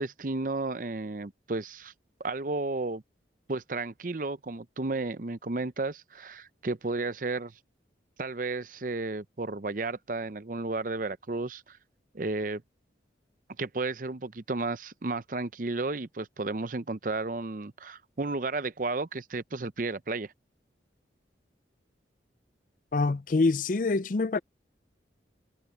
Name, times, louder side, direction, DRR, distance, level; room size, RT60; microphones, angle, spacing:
voice 1, 0.0-1.9 2.2-3.0 3.5-7.5 8.2-11.8 12.1-12.6 13.6-20.3, right 3 dB, 45° right, 0.7 m, -33 dB
voice 2, 22.9-24.4, left 3 dB, 45° left, 0.5 m, -25 dB
head